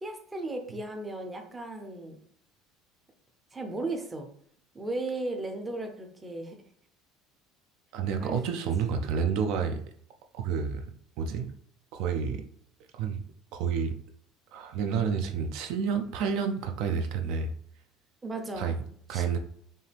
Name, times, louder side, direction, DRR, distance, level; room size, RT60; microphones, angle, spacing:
voice 1, 0.0-2.2 3.5-4.3 4.7-6.6 8.2-8.7 18.2-18.8 19.1-19.3, right 2 dB, 10° right, 4 dB, 0.6 m, -36 dB
voice 2, 7.9-9.8 10.3-10.8 11.2-11.5 11.9-12.4 12.9-13.2 13.5-14.0 14.5-17.5 18.6-18.8 19.1-19.4, right 6 dB, 60° right, 6 dB, 0.4 m, -29 dB
5.3 x 2.5 x 3.3 m, 0.63 s
cardioid pair, 165°, 0 cm